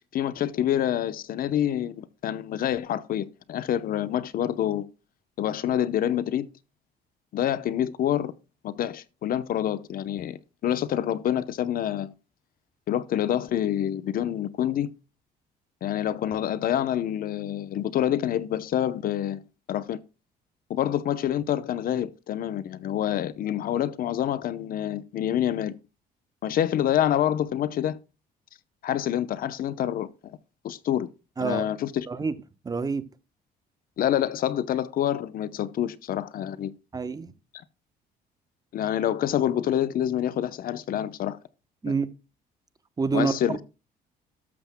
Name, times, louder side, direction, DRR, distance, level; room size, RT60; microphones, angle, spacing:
voice 1, 0.1-4.9 5.4-6.5 7.3-8.3 8.6-12.1 12.9-14.9 15.8-20.0 20.7-25.8 26.4-28.0 28.8-30.4 30.6-31.1 31.4-32.1 34.0-36.7 38.7-41.4 41.9-42.0 43.1-43.6, left 11 dB, 60° left, 0.8 m, -27 dB
voice 2, 32.6-33.0 36.9-37.3 41.8-42.1 43.0-43.6, right 4 dB, 20° right, 0.9 m, -27 dB
13.0 x 12.5 x 2.2 m
cardioid pair, 110°, 17 cm